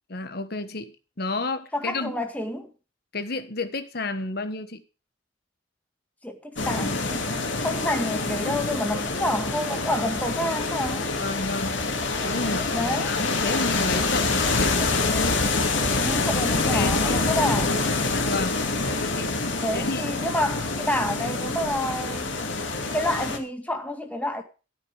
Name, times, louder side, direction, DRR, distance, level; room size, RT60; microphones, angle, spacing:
voice 1, 0.1-0.9 1.2-2.2 3.1-4.8 6.7-7.0 11.2-11.8 12.2-15.4 16.5-17.2 18.1-18.6 18.8-19.3 19.7-20.1, left 3 dB, 55° left, 1.4 m, -31 dB
voice 2, 1.7-2.7 6.2-7.2 7.6-11.1 12.7-13.1 16.0-17.9 19.6-22.3 22.9-24.4, left 1 dB, 10° left, 1.9 m, -28 dB
sound 1, 6.6-23.4, left 3 dB, 85° left, 2.7 m, -26 dB
14.0 x 9.1 x 4.9 m
head